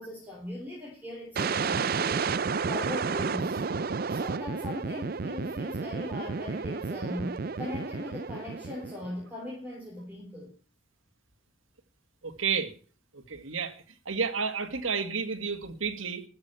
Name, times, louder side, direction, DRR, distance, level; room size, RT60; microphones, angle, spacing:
voice 1, 0.0-2.3 2.7-3.6 4.1-10.5, left 1 dB, 10° right, -4 dB, 3.8 m, -39 dB
sound 1, 1.4-9.2, right 5 dB, 45° right, 0.5 m, -31 dB
voice 2, 12.2-12.7 13.1-16.2, right 5 dB, 80° right, 8 dB, 2.0 m, -31 dB
13.5 x 6.4 x 9.0 m, 0.41 s
head